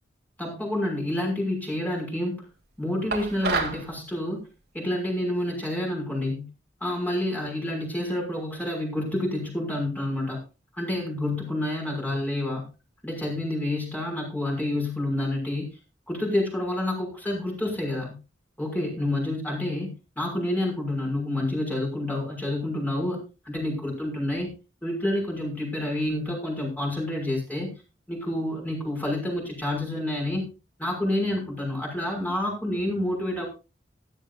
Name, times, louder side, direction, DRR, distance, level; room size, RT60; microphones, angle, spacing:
voice 1, 0.4-2.5 2.8-4.4 4.7-6.5 6.8-10.4 10.8-12.7 13.0-15.7 16.1-18.2 18.6-24.5 24.8-27.7 28.1-30.5 30.8-33.5, left 1 dB, 10° left, 0 dB, 6.4 m, -28 dB
sound 1, 3.1-3.8, right 4 dB, 65° right, 3.0 m, -28 dB
16.5 x 14.0 x 2.6 m, 0.30 s
head